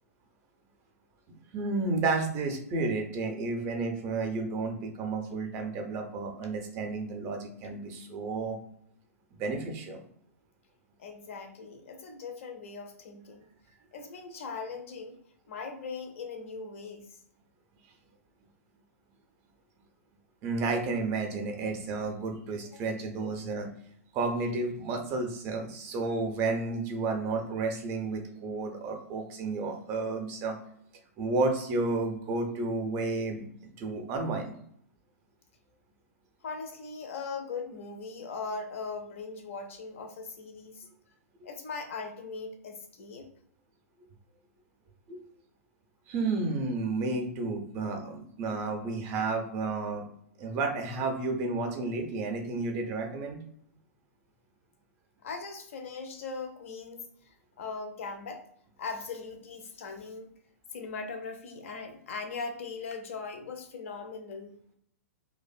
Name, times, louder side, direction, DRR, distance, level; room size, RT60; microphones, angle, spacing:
voice 1, 1.5-8.6 9.4-10.0 20.4-23.7 24.1-30.6 31.2-33.5 33.8-34.5 45.1-45.2 46.1-50.0 50.4-53.4, right 3 dB, 30° right, 4 dB, 0.5 m, -31 dB
voice 2, 11.0-13.5 13.9-15.2 15.5-17.2 22.7-22.8 36.4-40.9 41.4-43.3 48.0-48.1 55.2-58.5 58.8-60.3 60.7-64.6, left 4 dB, 55° left, 5 dB, 0.5 m, -40 dB
2.5 x 2.2 x 2.4 m, 0.67 s
figure-of-eight pair, 110°, 8 cm